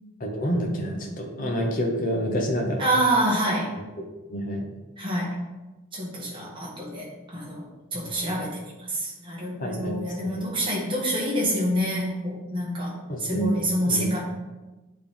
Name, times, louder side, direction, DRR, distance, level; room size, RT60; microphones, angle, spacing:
voice 1, 0.2-2.8 4.0-4.1 4.3-4.7 7.9-8.2 9.6-10.5 13.1-13.5 13.8-14.1, equal, 40° left, 1 dB, 1.0 m, -28 dB
voice 2, 2.8-3.7 5.0-5.3 5.9-12.9 13.2-14.2, right 1 dB, 25° right, -4 dB, 1.5 m, -27 dB
9.1 x 3.3 x 3.6 m, 1.1 s
head